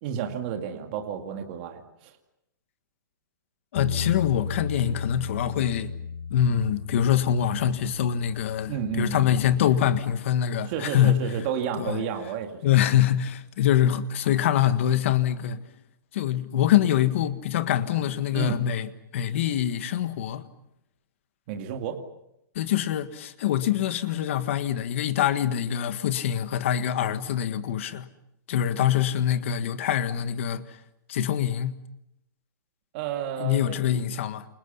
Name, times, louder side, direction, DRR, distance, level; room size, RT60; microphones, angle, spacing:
voice 1, 0.0-2.1 8.7-9.3 10.7-12.6 18.3-18.6 21.5-22.0 32.9-34.0, right 8 dB, 25° right, 2.5 m, -31 dB
voice 2, 3.7-5.9 6.3-11.3 11.8-12.0 12.6-15.6 16.1-20.5 22.5-28.1 28.5-30.8 31.1-31.8 33.4-34.5, left 10 dB, 35° left, 1.6 m, -24 dB
sound 1, 3.8-10.0, left 5 dB, 60° left, 6.5 m, -35 dB
29.0 x 29.0 x 5.7 m
hypercardioid pair, 175°, 11 cm